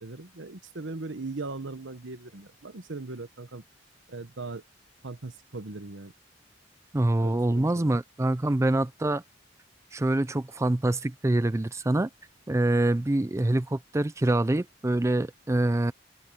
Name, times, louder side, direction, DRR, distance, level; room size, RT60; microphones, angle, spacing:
voice 1, 0.0-3.6 4.1-4.6 5.0-6.1 7.2-7.9, right 3 dB, 80° right, 1.2 m, -39 dB
voice 2, 6.9-9.2 9.9-12.1 12.5-15.9, right 1 dB, 15° right, 0.4 m, -25 dB
open air
head